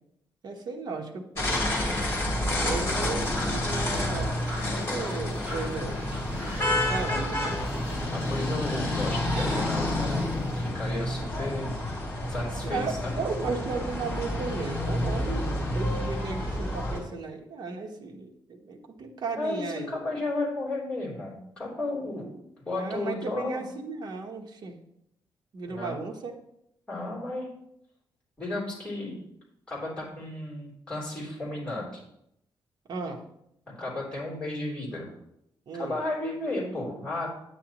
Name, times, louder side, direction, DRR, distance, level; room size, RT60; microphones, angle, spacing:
voice 1, 0.4-1.5 2.6-4.5 4.8-6.0 6.9-7.6 12.6-20.0 22.0-22.3 22.7-24.7 25.5-26.3 32.9-33.2 35.7-36.0, right 4 dB, 50° right, 1 dB, 1.0 m, -35 dB
sound 1, 1.4-17.0, left 1 dB, 30° left, 2.4 m, -29 dB
sound 2, 2.7-10.7, left 1 dB, 15° right, 3.3 m, -42 dB
voice 2, 8.1-11.7 12.3-13.1 19.4-22.3 22.6-23.6 25.7-26.0 26.9-27.5 28.4-29.1 29.7-32.0 33.7-35.1 35.7-37.3, left 2 dB, 10° left, -7 dB, 3.4 m, -33 dB
9.6 x 8.9 x 3.0 m, 0.79 s
wide cardioid pair, 180°, 9 cm